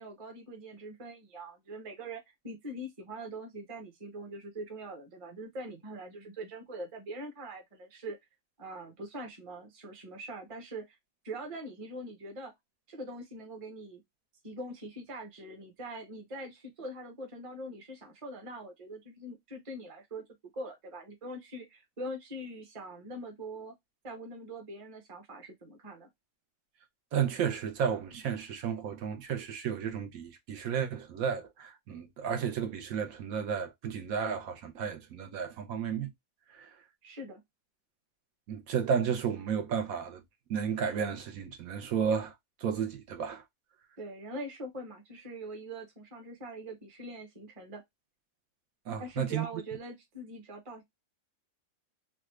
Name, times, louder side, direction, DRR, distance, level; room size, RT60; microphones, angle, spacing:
voice 1, 0.0-8.2 8.6-11.0 11.2-12.5 12.9-14.0 14.4-20.2 20.5-23.7 24.0-26.1 37.0-37.4 44.0-47.8 49.0-50.8, right 1 dB, 30° right, 0.8 m, -43 dB
voice 2, 27.1-36.1 36.5-36.7 38.5-40.2 40.5-42.3 42.6-43.4 48.9-49.5, right 7 dB, 80° right, 1.2 m, -32 dB
3.3 x 2.4 x 3.0 m
omnidirectional pair, 1.5 m